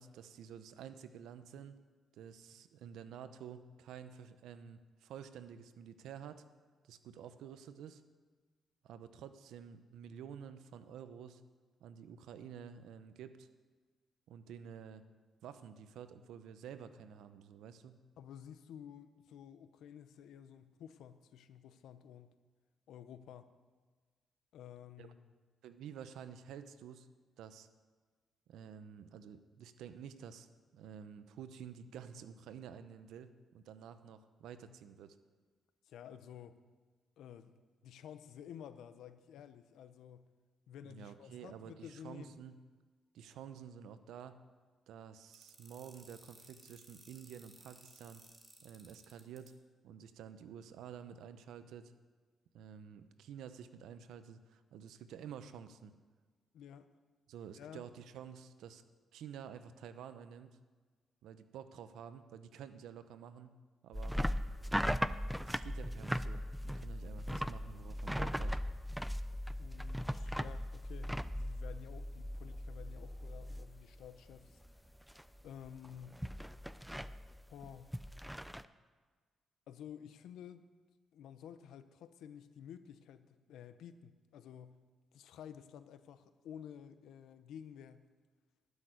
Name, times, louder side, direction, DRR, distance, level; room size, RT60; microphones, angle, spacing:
voice 1, 0.0-1.8 2.1-6.4 6.8-8.0 8.8-11.4 11.8-13.5 14.3-15.0 15.4-18.0 25.0-25.1 25.6-27.1 27.4-27.7 28.5-30.5 30.7-35.2 40.8-42.5 43.1-44.4 44.9-48.2 48.6-49.5 49.8-51.9 52.5-55.9 57.3-58.8 59.1-60.6 61.2-63.5 63.8-64.2 65.5-68.6, right 8 dB, 90° right, 11 dB, 0.7 m, -50 dB
voice 2, 18.2-22.3 22.9-23.5 24.5-25.3 35.8-36.6 37.2-40.3 40.7-42.4 56.5-56.9 57.6-57.8 69.6-74.6 75.4-76.2 77.5-78.0 79.7-80.7 81.1-84.8 85.1-88.1, left 9 dB, 85° left, 11 dB, 0.7 m, -52 dB
sound 1, 45.3-49.5, right 2 dB, 20° right, 2.1 m, -59 dB
sound 2, 63.9-74.1 74.3-74.8 75.1-78.6, equal, ahead, 0.4 m, -38 dB
12.0 x 6.5 x 9.4 m, 1.4 s
cardioid pair, 105°, 0 cm